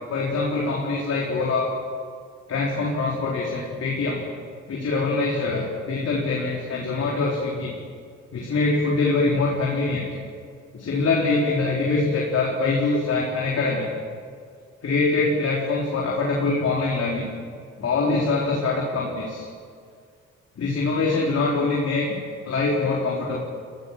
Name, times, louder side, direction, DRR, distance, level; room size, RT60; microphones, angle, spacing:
voice 1, 0.1-1.7 2.5-4.2 4.7-7.7 8.3-10.1 10.7-13.9 14.8-17.2 17.8-19.5 20.6-22.1 22.4-23.4, left 3 dB, 55° left, -4 dB, 4.4 m, -24 dB
22.5 x 16.0 x 7.6 m, 2.1 s
cardioid pair, 90°, 30 cm